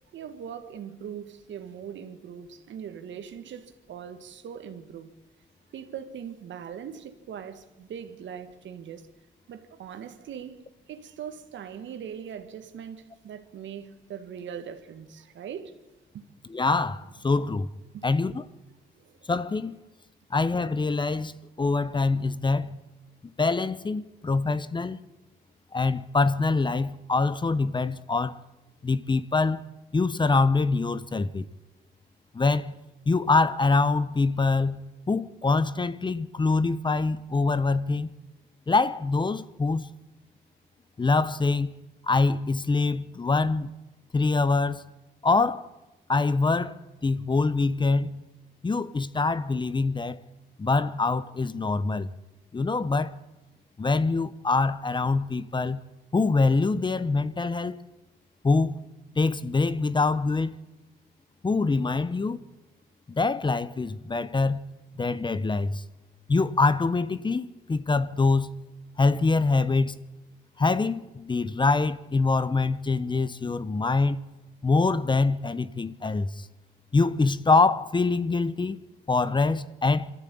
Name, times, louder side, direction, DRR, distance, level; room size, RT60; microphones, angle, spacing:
voice 1, 0.1-5.1 5.7-9.1 9.5-15.7 16.1-16.3 17.9-18.1 18.9-19.3, right 8 dB, 70° right, 1.9 m, -41 dB
voice 2, 16.5-17.7 18.0-18.4 19.3-19.7 20.3-22.8 23.4-25.0 25.7-28.4 28.8-29.6 29.9-31.5 32.3-32.7 33.1-38.1 38.7-39.9 41.0-41.7 42.0-43.7 44.1-44.9 45.2-45.7 46.1-48.2 48.6-50.2 50.6-52.1 52.5-53.2 53.8-55.8 56.1-57.8 58.4-58.8 59.2-60.5 61.4-62.4 63.1-64.6 65.0-65.8 66.3-68.5 69.0-70.0 70.6-74.2 74.6-76.5 76.9-78.8 79.1-80.1, left 3 dB, 25° left, 0.8 m, -24 dB
23.5 x 14.0 x 8.6 m
cardioid pair, 90°, 20 cm